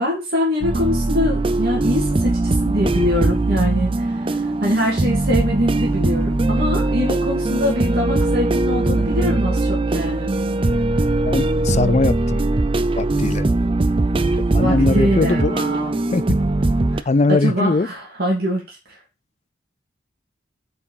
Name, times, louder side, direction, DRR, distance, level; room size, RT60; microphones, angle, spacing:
voice 1, 0.0-10.3 14.6-15.9 16.9-19.0, left 1 dB, 50° right, 2.7 m, -23 dB
sound 1, 0.6-17.0, right 2 dB, 25° right, 0.4 m, -20 dB
voice 2, 11.2-12.5 13.0-13.5 14.5-15.6 16.1-16.4 17.1-17.9, left 3 dB, 35° left, 0.4 m, -20 dB
8.5 x 4.7 x 5.5 m
head